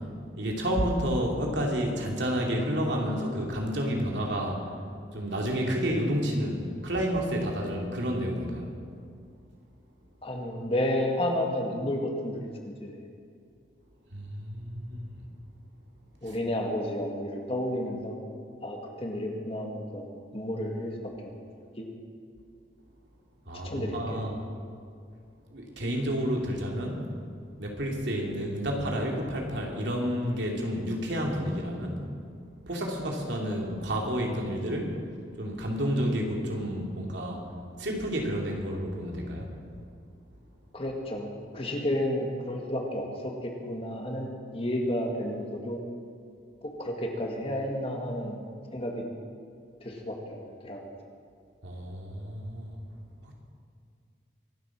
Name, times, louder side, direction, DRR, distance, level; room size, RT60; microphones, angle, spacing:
voice 1, 0.4-4.6 5.1-8.7 14.1-15.2 16.3-16.4 23.5-24.4 25.5-27.0 27.6-32.0 32.7-35.0 35.4-37.4 37.8-39.5 51.6-52.8, equal, 75° right, 0 dB, 2.9 m, -30 dB
voice 2, 10.2-12.9 16.2-18.2 18.6-20.1 20.3-20.9 21.2-21.4 21.8-21.9 23.6-24.2 40.7-41.3 41.5-45.8 46.6-48.4 48.7-49.0 49.8-50.9, left 1 dB, 30° left, 1 dB, 2.0 m, -31 dB
24.5 x 8.4 x 6.1 m, 2.3 s
head